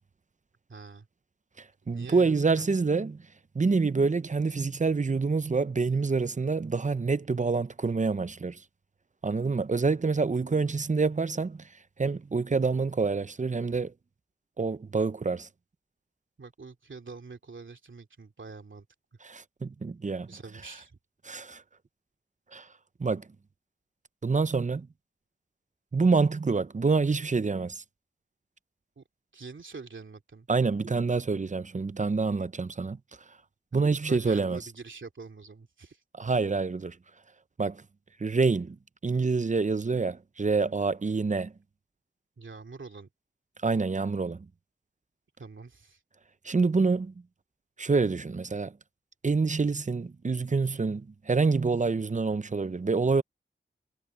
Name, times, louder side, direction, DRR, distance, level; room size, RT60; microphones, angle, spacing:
voice 1, 0.7-1.1 1.9-2.7 10.7-10.9 16.4-18.9 20.3-21.0 29.0-29.1 29.3-30.5 33.8-36.0 42.4-43.1 45.4-46.0, right 4 dB, 70° right, 2.7 m, -45 dB
voice 2, 1.6-3.2 3.5-8.6 9.2-11.6 12.0-13.9 14.6-15.5 19.3-20.3 21.2-21.6 22.5-22.7 23.0-23.2 24.2-24.9 25.9-27.8 30.5-33.0 33.7-34.6 36.2-37.0 37.6-37.8 38.2-38.8 39.0-41.5 43.6-44.5 46.4-47.1 47.8-48.7 49.2-53.2, right 4 dB, 40° right, 0.6 m, -27 dB
wide cardioid pair, 65°, 20 cm